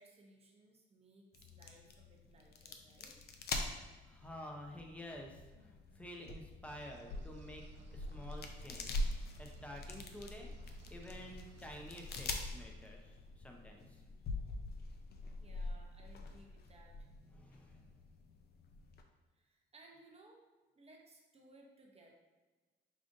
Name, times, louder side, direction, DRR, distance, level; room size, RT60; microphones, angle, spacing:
voice 1, 0.0-3.2 15.4-17.1 19.3-20.5 20.7-22.2, right 2 dB, 30° right, 0 dB, 0.7 m, -62 dB
sound 1, 1.3-19.0, left 2 dB, 55° left, 0.5 m, -44 dB
voice 2, 4.0-7.7 7.9-9.1 9.4-10.5 10.9-14.0 17.3-18.0, left 1 dB, 5° left, 1 dB, 0.6 m, -50 dB
sound 2, 6.6-12.2, right 5 dB, 65° right, 0.5 m, -57 dB
5.1 x 2.4 x 2.6 m, 1.3 s
cardioid pair, 90°, 20 cm